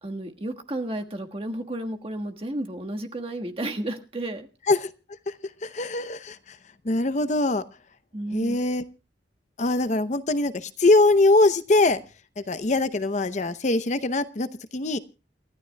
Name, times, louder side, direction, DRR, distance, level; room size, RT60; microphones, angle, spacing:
voice 1, 0.0-4.5 8.1-8.6, right 1 dB, 30° right, 4 dB, 1.4 m, -32 dB
voice 2, 5.6-6.6 6.8-7.6 8.3-8.8 9.6-12.0 12.4-14.5 14.7-15.0, left 2 dB, 40° left, 12 dB, 0.7 m, -22 dB
29.0 x 13.0 x 2.2 m, 0.32 s
head